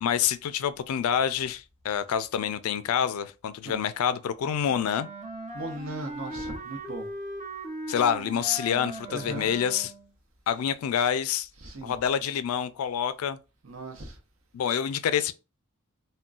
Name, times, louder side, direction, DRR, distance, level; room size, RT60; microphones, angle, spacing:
voice 1, 0.0-5.1 7.9-9.9 10.5-11.5 11.8-13.4 14.5-15.3, left 8 dB, 80° left, 0.3 m, -27 dB
Wind instrument woodwind instrument, 4.7-10.1, right 2 dB, 30° right, 0.6 m, -39 dB
voice 2, 5.5-7.1 9.1-9.5 11.5-12.0 13.6-14.2, right 2 dB, 70° right, 0.8 m, -38 dB
3.7 x 2.1 x 2.3 m
head